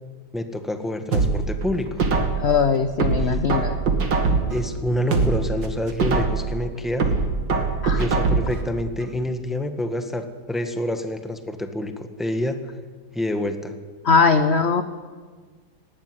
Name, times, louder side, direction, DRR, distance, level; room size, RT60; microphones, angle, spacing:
voice 1, 0.3-2.0 3.2-3.5 4.5-7.1 8.0-12.6 13.1-13.7, left 1 dB, ahead, 7 dB, 1.1 m, -27 dB
sound 1, 1.1-2.5 3.0-4.6 5.0-6.5 7.0-8.6 9.0-9.1, right 4 dB, 60° right, 2.6 m, -22 dB
voice 2, 2.4-3.7 7.8-8.0 14.0-14.8, left 5 dB, 55° left, 10 dB, 0.7 m, -20 dB
19.0 x 15.0 x 9.7 m, 1.5 s
omnidirectional pair, 2.2 m